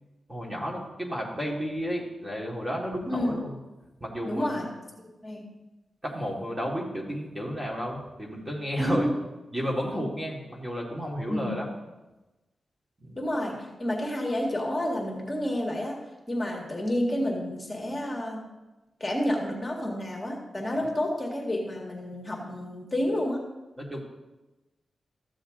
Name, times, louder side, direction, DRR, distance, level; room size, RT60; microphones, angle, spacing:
voice 1, 0.3-3.5 4.0-4.6 6.0-9.1 9.5-11.7 13.0-13.2 23.8-24.0, equal, 15° right, -2 dB, 2.3 m, -32 dB
voice 2, 3.1-3.4 4.2-4.7 5.0-5.5 8.8-9.1 11.3-11.6 13.1-16.0 16.3-18.4 19.0-23.4, left 1 dB, 20° left, -1 dB, 2.0 m, -30 dB
14.0 x 7.1 x 3.8 m, 1.1 s
cardioid pair, 85°, 0 cm